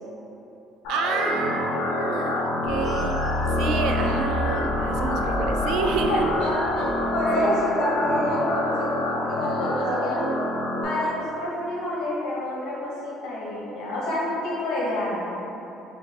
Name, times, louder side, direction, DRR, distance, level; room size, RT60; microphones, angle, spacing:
sound 1, 0.8-10.8, left 1 dB, 85° left, 0.7 m, -27 dB
voice 1, 0.9-3.2 3.6-6.3 9.8-10.4, right 4 dB, 70° right, 3 dB, 0.3 m, -29 dB
voice 2, 1.6-2.3 6.1-10.2 10.8-15.3, left 1 dB, 65° left, -5 dB, 1.0 m, -28 dB
sound 2, 2.7-7.6, left 1 dB, 45° left, 0.6 m, -30 dB
4.8 x 2.3 x 3.3 m, 3.0 s
cardioid pair, 145°, 0 cm